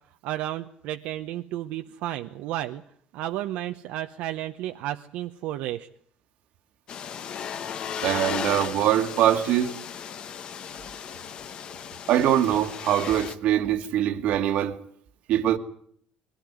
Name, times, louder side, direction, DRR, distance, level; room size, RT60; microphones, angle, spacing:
voice 1, 0.2-2.8 3.1-5.9, right 13 dB, 80° right, 0.9 m, -32 dB
sound 1, 6.9-13.3, left 8 dB, 40° left, 1.2 m, -35 dB
voice 2, 8.0-9.7 12.1-14.8 15.3-15.6, right 11 dB, 60° right, 1.7 m, -23 dB
22.0 x 17.0 x 9.4 m
cardioid pair, 155°, 2 cm